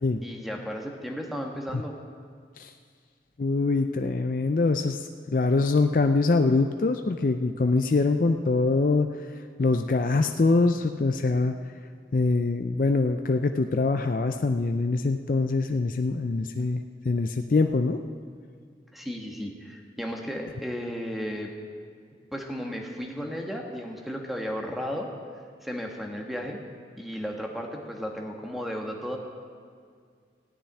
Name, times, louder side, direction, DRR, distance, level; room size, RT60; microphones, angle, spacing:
voice 1, 0.2-1.9 18.9-21.5 22.3-25.1 25.6-26.6 27.0-29.2, equal, ahead, 1 dB, 1.3 m, -34 dB
voice 2, 3.4-5.0 5.3-9.1 9.6-11.5 12.1-18.0, left 3 dB, 50° left, 6 dB, 0.4 m, -24 dB
15.0 x 6.7 x 9.7 m, 2.1 s
head